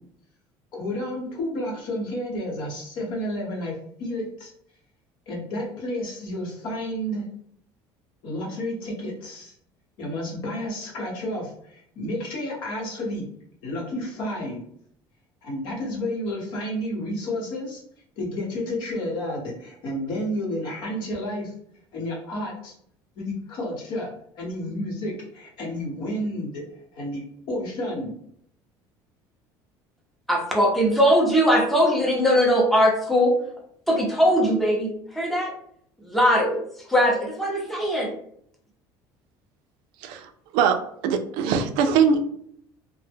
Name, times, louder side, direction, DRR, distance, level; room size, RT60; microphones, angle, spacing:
voice 1, 0.7-4.5 5.3-7.3 8.2-9.5 10.0-13.3 13.6-14.6 15.4-17.8 18.2-21.5 21.9-22.7 23.1-26.6 26.9-27.2 27.5-28.1, left 1 dB, 65° left, -2 dB, 1.0 m, -31 dB
voice 2, 30.3-33.4 33.9-35.5 36.0-36.6 36.9-38.1, equal, ahead, -2 dB, 0.6 m, -20 dB
voice 3, 40.0-40.8 41.0-42.2, right 6 dB, 80° right, 7 dB, 0.4 m, -22 dB
2.1 x 2.0 x 3.4 m, 0.67 s
cardioid pair, 145°, 9 cm